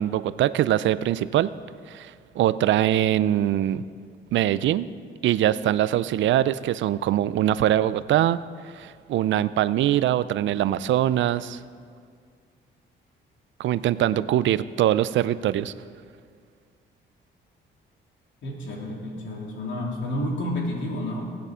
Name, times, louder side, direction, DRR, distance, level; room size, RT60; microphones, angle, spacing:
voice 1, 0.0-1.5 1.9-3.8 4.3-4.9 5.2-11.6 13.6-15.7, right 12 dB, 70° right, 16 dB, 0.5 m, -23 dB
voice 2, 18.4-21.3, left 1 dB, 70° left, -1 dB, 2.9 m, -30 dB
19.0 x 8.3 x 5.0 m, 2.1 s
cardioid pair, 90°, 20 cm